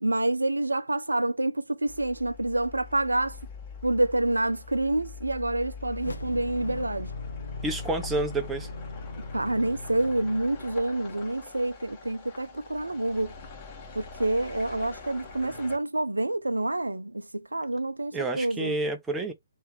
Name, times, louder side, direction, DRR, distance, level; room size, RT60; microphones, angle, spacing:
voice 1, 0.0-3.4 3.8-7.1 9.3-13.3 14.0-17.2 17.5-18.7, right 2 dB, 80° right, 0.4 m, -27 dB
sound 1, 1.9-15.8, left 5 dB, 25° left, 1.7 m, -43 dB
sound 2, 5.9-11.3, left 3 dB, 70° left, 0.9 m, -40 dB
voice 2, 7.6-8.7 18.1-19.3, right 2 dB, 10° right, 0.8 m, -29 dB
3.3 x 3.1 x 4.7 m
figure-of-eight pair, 130°, 0 cm